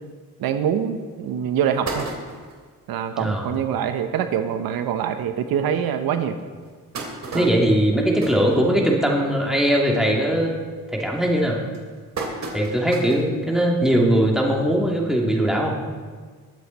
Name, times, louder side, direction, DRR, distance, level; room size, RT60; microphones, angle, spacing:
voice 1, 0.4-2.1 2.9-6.4 7.3-7.5, right 8 dB, 85° right, 8 dB, 1.0 m, -24 dB
sound 1, 0.7-0.8 1.3-1.4 1.6-2.7 3.2-3.3 3.6-3.7 4.0-4.2 4.9-5.0 5.5-5.6 6.4-9.2 9.6-9.9 10.3-10.7 11.3-13.3 13.7-13.8 15.0-15.1, right 3 dB, 50° right, 2.8 m, -34 dB
voice 2, 3.2-3.5 7.3-10.5 10.9-11.6 12.5-15.7, right 1 dB, ahead, -2 dB, 2.8 m, -20 dB
22.0 x 8.1 x 4.2 m, 1.5 s
cardioid pair, 100°, 35 cm